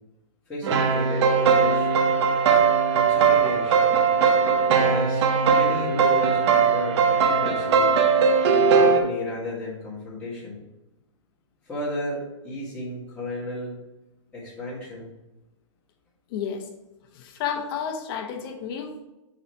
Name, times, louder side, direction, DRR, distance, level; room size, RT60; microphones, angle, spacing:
voice 1, 0.5-1.9 2.9-4.1 4.7-7.9 8.4-10.6 11.7-13.8 14.3-15.1, left 1 dB, 5° left, -10 dB, 2.2 m, -33 dB
sound 1, 0.6-9.0, right 6 dB, 60° right, 0.9 m, -20 dB
voice 2, 16.3-16.7 17.1-19.0, left 7 dB, 50° left, 5 dB, 1.1 m, -31 dB
6.8 x 4.1 x 4.7 m, 1.0 s
hypercardioid pair, 135°, 16 cm